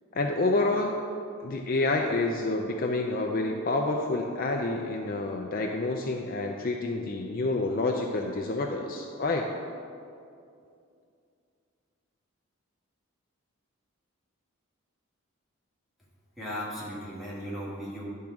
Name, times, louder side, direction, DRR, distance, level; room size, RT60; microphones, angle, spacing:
voice 1, 0.1-1.0 1.4-9.5, left 2 dB, 40° left, 2 dB, 0.4 m, -28 dB
voice 2, 16.4-18.1, equal, ahead, -8 dB, 1.6 m, -36 dB
10.5 x 3.7 x 5.9 m, 2.5 s
head